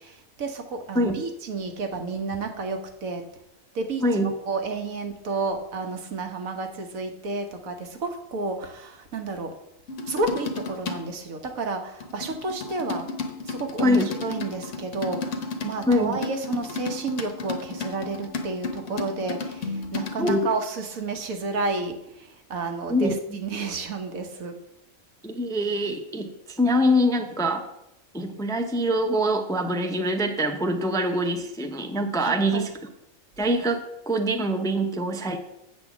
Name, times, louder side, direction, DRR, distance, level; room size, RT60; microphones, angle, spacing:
voice 1, 0.4-3.2 3.7-9.5 10.0-13.1 13.5-24.6 32.2-32.7, right 3 dB, 90° right, 6 dB, 1.5 m, -31 dB
sound 1, 9.9-11.2 12.0-20.3, left 4 dB, 65° left, 1.3 m, -33 dB
voice 2, 15.9-16.2 20.2-20.5 22.9-23.4 25.2-27.6 28.1-32.7 33.4-35.4, equal, 5° left, 6 dB, 0.4 m, -24 dB
8.3 x 4.3 x 7.0 m, 0.83 s
omnidirectional pair, 1.4 m